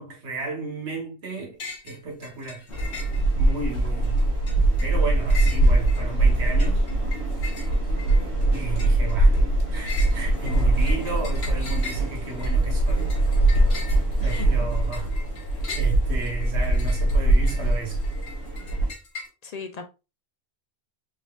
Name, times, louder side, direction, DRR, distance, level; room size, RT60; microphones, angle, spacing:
voice 1, 0.0-1.6 1.8-2.7 3.4-4.2 4.8-6.8 8.5-9.4 9.7-13.1 13.5-15.1 15.8-18.0, right 3 dB, 85° right, 1.5 m, -34 dB
sound 1, 1.6-3.6 4.0-19.3, left 4 dB, 70° left, 1.3 m, -41 dB
sound 2, 2.7-18.9, right 2 dB, 90° left, 1.4 m, -22 dB
voice 2, 14.2-14.7 15.5-15.7 19.4-19.8, left 6 dB, 50° left, 0.5 m, -38 dB
4.3 x 3.8 x 2.3 m
omnidirectional pair, 1.1 m